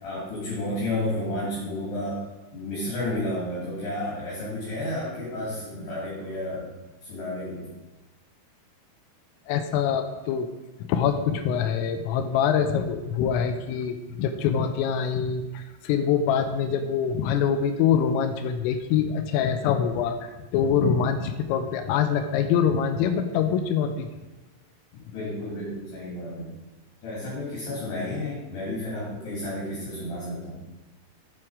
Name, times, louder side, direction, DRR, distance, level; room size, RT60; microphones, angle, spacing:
voice 1, 0.0-2.2 2.5-6.7 7.0-7.7 25.1-26.5 27.0-30.6, left 1 dB, 55° left, -7 dB, 4.6 m, -31 dB
voice 2, 9.5-10.5 10.8-24.1, left 7 dB, 85° left, 8 dB, 3.3 m, -24 dB
9.3 x 7.6 x 4.9 m, 1.1 s
omnidirectional pair, 5.9 m